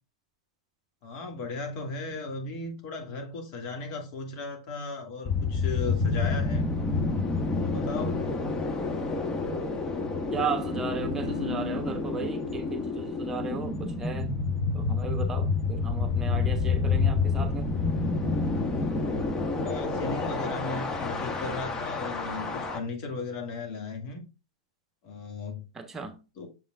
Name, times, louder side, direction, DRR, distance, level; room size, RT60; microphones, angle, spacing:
voice 1, 1.0-6.7 7.5-8.2 19.6-24.2 25.0-25.6 26.4-26.5, left 3 dB, 45° left, 2.2 m, -36 dB
sound 1, 5.2-22.8, left 4 dB, 20° left, 1.2 m, -29 dB
voice 2, 10.3-14.3 14.7-17.7 25.7-26.2, right 5 dB, 15° right, 1.2 m, -35 dB
sound 2, 10.6-14.3, left 4 dB, 75° left, 2.9 m, -41 dB
7.1 x 5.5 x 2.5 m
figure-of-eight pair, 105°, 3 cm